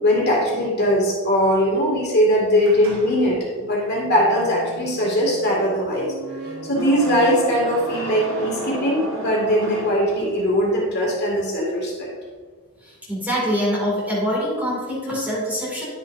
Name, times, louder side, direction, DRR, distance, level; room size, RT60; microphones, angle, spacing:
voice 1, 0.0-6.1 6.6-12.1, equal, 45° left, -4 dB, 2.3 m, -20 dB
sound 1, 2.6-10.7, right 1 dB, 65° right, 1.5 m, -33 dB
voice 2, 12.8-15.8, equal, 10° right, -6 dB, 2.5 m, -24 dB
10.5 x 7.0 x 2.7 m, 1.5 s
head